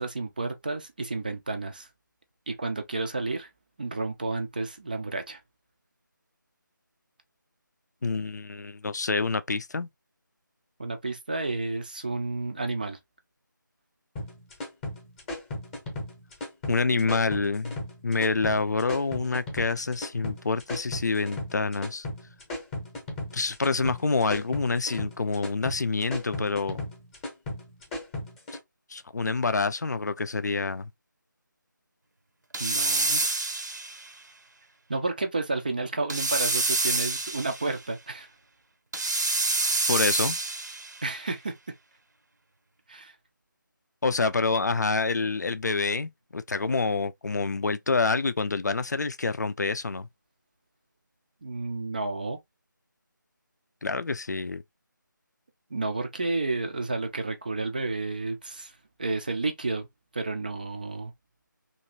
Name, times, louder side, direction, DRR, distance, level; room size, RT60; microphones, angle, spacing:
voice 1, 0.0-1.9 2.5-3.5 3.8-5.4 10.8-13.0 32.6-33.2 34.9-38.3 41.0-41.6 42.9-43.1 51.4-52.4 55.7-58.7 59.0-59.9 60.1-61.1, right 3 dB, 25° right, 0.4 m, -31 dB
voice 2, 8.0-9.9 16.7-17.8 18.0-22.1 23.3-26.8 28.9-30.9 39.9-40.4 44.0-50.1 53.8-54.6, left 4 dB, 55° left, 0.4 m, -27 dB
sound 1, 14.2-28.6, left 1 dB, 10° left, 0.8 m, -36 dB
sound 2, 32.5-34.1 36.1-37.7 38.9-41.0, right 3 dB, 60° right, 0.7 m, -27 dB
2.8 x 2.5 x 2.9 m
figure-of-eight pair, 160°, 11 cm